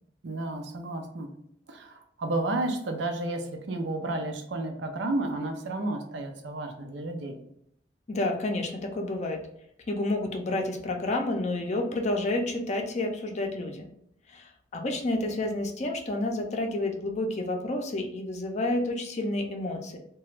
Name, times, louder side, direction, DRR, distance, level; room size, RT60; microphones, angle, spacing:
voice 1, 0.2-1.3 1.7-7.4, right 2 dB, 80° right, 4 dB, 0.5 m, -32 dB
voice 2, 8.1-9.4 9.9-13.9 14.3-20.0, left 2 dB, 40° left, 3 dB, 0.5 m, -30 dB
2.9 x 2.2 x 3.1 m, 0.71 s
head